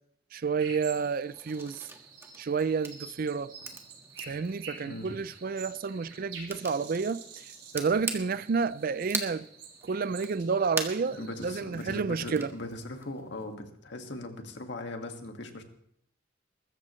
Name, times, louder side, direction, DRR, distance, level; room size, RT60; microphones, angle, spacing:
voice 1, 0.3-1.8 2.4-3.5 4.3-7.5 7.7-9.5 9.8-12.5, right 5 dB, 50° right, 0.4 m, -30 dB
sound 1, 0.6-11.6, right 5 dB, 85° right, 4.8 m, -49 dB
sound 2, 1.0-13.6, right 2 dB, 15° right, 1.6 m, -43 dB
voice 2, 11.2-15.6, left 1 dB, 65° left, 1.9 m, -39 dB
22.0 x 14.0 x 3.2 m
head